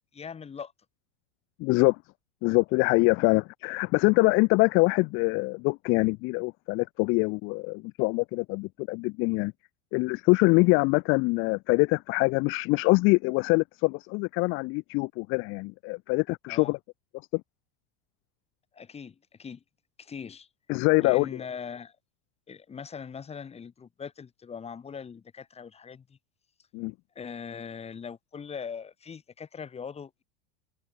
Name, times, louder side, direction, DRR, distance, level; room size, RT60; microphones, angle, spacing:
voice 1, 0.1-0.7 16.5-16.7 18.7-19.6 20.0-20.5 21.0-22.0 22.5-26.2 27.1-30.2, left 6 dB, 20° left, 3.3 m, -41 dB
voice 2, 1.6-2.0 2.4-9.5 9.9-16.8 17.3-17.4 20.7-21.3 26.7-26.9, left 26 dB, 40° left, 0.5 m, -24 dB
supercardioid pair, 130°, 30 cm